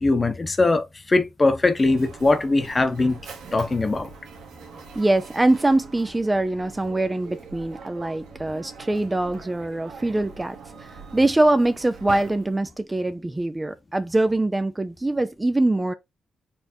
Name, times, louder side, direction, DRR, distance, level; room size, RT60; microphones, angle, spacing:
voice 1, 0.0-3.2 3.5-4.1, left 2 dB, 30° left, 0.9 m, -21 dB
Mechanisms, 1.6-12.8, right 5 dB, 90° right, 1.0 m, -43 dB
voice 2, 5.0-10.6 10.8-15.9, right 2 dB, 20° right, 0.4 m, -23 dB
4.3 x 3.3 x 2.7 m
cardioid pair, 70°, 0 cm